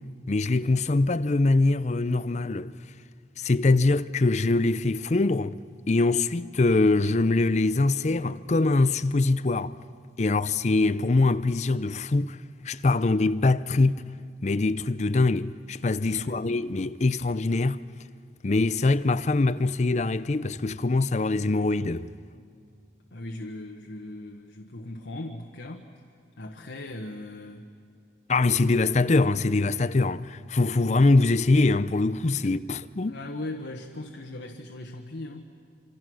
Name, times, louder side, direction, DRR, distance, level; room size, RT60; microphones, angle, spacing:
voice 1, 0.3-2.7 3.4-5.6 5.9-9.7 10.2-12.4 12.6-14.0 14.4-17.8 18.4-22.1 28.3-33.1, left 3 dB, 40° left, 0.5 m, -23 dB
voice 2, 16.1-16.5 23.1-25.9 26.4-27.7 32.4-32.7 33.0-35.5, left 1 dB, 85° left, 1.4 m, -39 dB
26.5 x 26.5 x 6.3 m
head